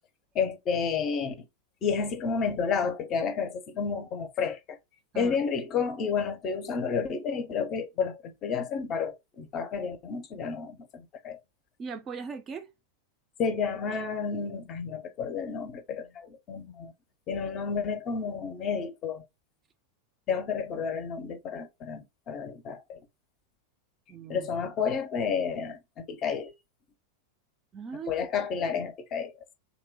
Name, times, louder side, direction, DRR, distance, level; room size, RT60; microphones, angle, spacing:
voice 1, 0.3-1.3 1.8-4.8 5.1-11.4 13.4-16.9 17.3-19.2 20.3-23.0 24.3-26.5 28.1-29.3, left 6 dB, 30° left, 0.5 m, -31 dB
voice 2, 11.8-12.7 24.1-24.5 27.7-28.1 28.7-28.8, right 5 dB, 25° right, 0.3 m, -39 dB
2.8 x 2.0 x 2.6 m
figure-of-eight pair, 90°, 0 cm